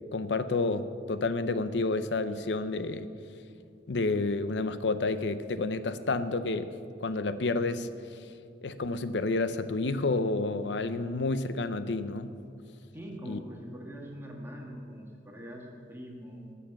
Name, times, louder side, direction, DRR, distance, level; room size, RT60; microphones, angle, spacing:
voice 1, 0.1-3.1 3.9-6.7 7.0-7.9 8.6-12.4 13.3-13.4, left 3 dB, 75° left, 12 dB, 0.6 m, -30 dB
voice 2, 12.9-16.6, equal, 15° right, -1 dB, 1.7 m, -43 dB
20.0 x 7.1 x 5.9 m, 2.4 s
head